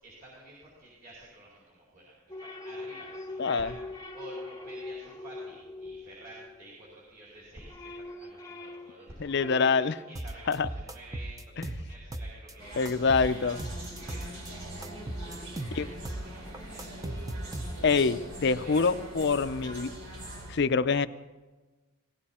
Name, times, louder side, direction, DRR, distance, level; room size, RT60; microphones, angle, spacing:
voice 1, 0.0-3.8 4.1-14.7 15.2-18.0 18.5-18.8 19.3-19.7, right 1 dB, 45° right, -6 dB, 4.9 m, -51 dB
sound 1, 2.3-7.0 7.4-10.1, left 2 dB, 15° left, 0.8 m, -43 dB
voice 2, 3.4-3.7 9.2-10.0 10.5-10.7 11.6-11.7 12.8-13.6 15.7-15.9 17.8-19.9 20.5-21.1, left 4 dB, 55° left, 13 dB, 0.5 m, -25 dB
sound 2, 10.2-12.5 12.9-14.5 14.8-18.0, right 1 dB, 15° right, 0.7 m, -38 dB
sound 3, 12.6-20.5, right 1 dB, 85° right, 3.7 m, -42 dB
18.5 x 17.0 x 4.3 m, 1.2 s
head